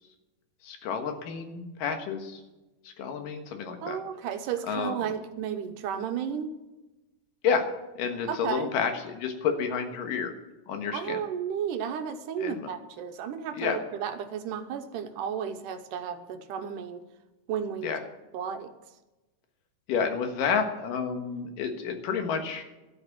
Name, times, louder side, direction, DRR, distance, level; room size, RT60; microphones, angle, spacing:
voice 1, 0.6-2.4 2.8-4.0 4.7-5.0 7.4-7.7 8.0-10.3 10.7-11.2 12.4-12.6 13.5-13.8 17.8-18.0 19.9-22.7, left 6 dB, 90° left, 6 dB, 3.1 m, -30 dB
voice 2, 3.8-6.6 8.3-8.7 10.9-17.0 17.5-17.9 18.3-18.7, right 8 dB, 80° right, 8 dB, 2.5 m, -33 dB
12.5 x 8.4 x 7.4 m, 1.1 s
omnidirectional pair, 3.7 m